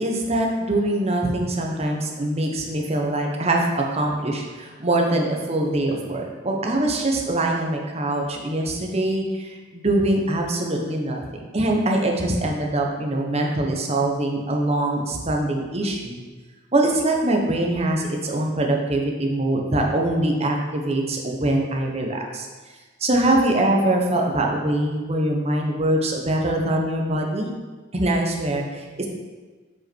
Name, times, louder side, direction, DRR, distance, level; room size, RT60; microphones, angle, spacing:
voice 1, 0.0-16.2 16.7-22.5 23.0-27.5 27.9-29.1, right 1 dB, 35° right, 0 dB, 1.1 m, -23 dB
8.2 x 5.3 x 4.6 m, 1.3 s
head